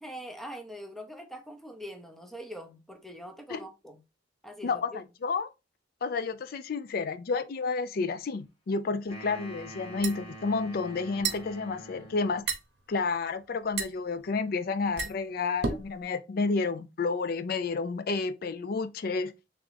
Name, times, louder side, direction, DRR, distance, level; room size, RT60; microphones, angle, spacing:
voice 1, 0.0-4.0 4.4-5.0, equal, ahead, 0.6 m, -43 dB
voice 2, 4.6-5.5 6.0-12.5 12.9-19.3, left 4 dB, 55° left, 0.4 m, -30 dB
sound 1, 9.1-12.5, right 1 dB, 35° left, 1.1 m, -45 dB
sound 2, 9.6-16.0, right 5 dB, 65° right, 0.8 m, -36 dB
3.5 x 3.0 x 3.2 m
head